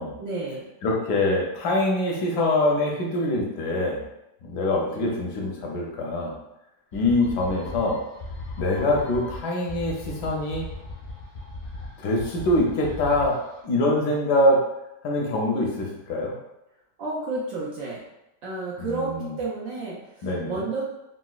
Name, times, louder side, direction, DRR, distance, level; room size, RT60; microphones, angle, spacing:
voice 1, 0.2-0.6 4.8-5.1 17.0-18.0 18.4-20.8, right 3 dB, 70° right, -5 dB, 0.8 m, -31 dB
voice 2, 0.8-4.0 4.4-6.3 6.9-8.0 8.6-10.7 12.0-13.4 13.6-14.6 15.0-16.3 18.8-19.4 20.2-20.6, left 1 dB, 75° left, -1 dB, 1.2 m, -24 dB
sound 1, 6.9-13.5, left 2 dB, 55° left, 0.5 m, -38 dB
3.9 x 2.0 x 2.3 m, 0.89 s
omnidirectional pair, 1.8 m